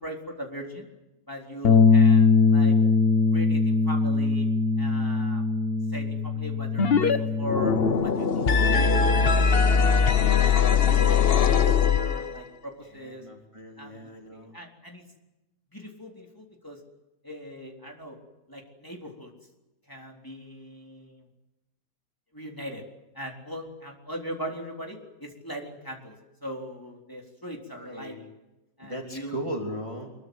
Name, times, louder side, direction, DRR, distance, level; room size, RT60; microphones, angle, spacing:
voice 1, 0.0-0.9 1.3-2.8 3.3-4.5 4.8-5.4 5.9-9.8 10.2-13.2 13.8-15.0 15.7-16.8 17.2-18.2 18.5-19.3 19.9-21.2 22.3-22.8 23.1-26.1 26.4-28.1 28.8-29.4, equal, 10° left, 0 dB, 3.8 m, -39 dB
Bass guitar, 1.6-7.9, left 4 dB, 60° left, 1.7 m, -21 dB
sound 1, 6.8-7.2 7.4-12.4, left 6 dB, 40° left, 1.0 m, -21 dB
voice 2, 12.9-14.6 27.7-28.3 28.8-30.1, right 1 dB, 15° right, 1 dB, 3.0 m, -37 dB
25.0 x 22.5 x 8.0 m, 0.99 s
omnidirectional pair, 1.8 m